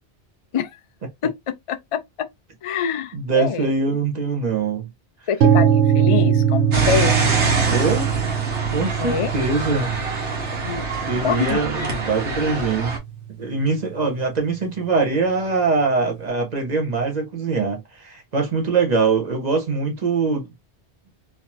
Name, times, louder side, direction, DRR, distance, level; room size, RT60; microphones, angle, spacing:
voice 1, 1.7-2.3 2.6-3.7 5.3-7.2 9.0-9.3 10.6-10.8 11.2-11.6, left 8 dB, 50° left, 0.4 m, -25 dB
voice 2, 3.1-4.9 7.7-8.1 8.7-10.0 11.1-13.0 13.4-20.5, right 4 dB, 40° right, 1.2 m, -23 dB
sound 1, 5.4-13.3, right 8 dB, 70° right, 0.9 m, -22 dB
sound 2, 6.7-13.0, right 3 dB, 90° right, 1.5 m, -25 dB
3.8 x 2.9 x 2.5 m
omnidirectional pair, 1.1 m